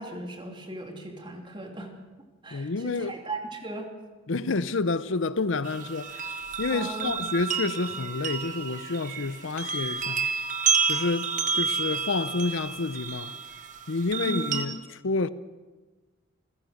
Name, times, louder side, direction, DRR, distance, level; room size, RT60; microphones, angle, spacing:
voice 1, 0.0-1.9 2.4-3.9 6.7-7.2 14.2-14.6, right 2 dB, 25° right, 3.0 m, -37 dB
voice 2, 2.5-3.1 4.3-6.2 6.6-10.3 10.9-11.3 11.5-13.3 13.9-14.8 15.0-15.3, left 3 dB, 70° left, 0.7 m, -29 dB
sound 1, 5.6-14.7, right 6 dB, 40° right, 1.7 m, -30 dB
28.5 x 15.5 x 6.6 m
head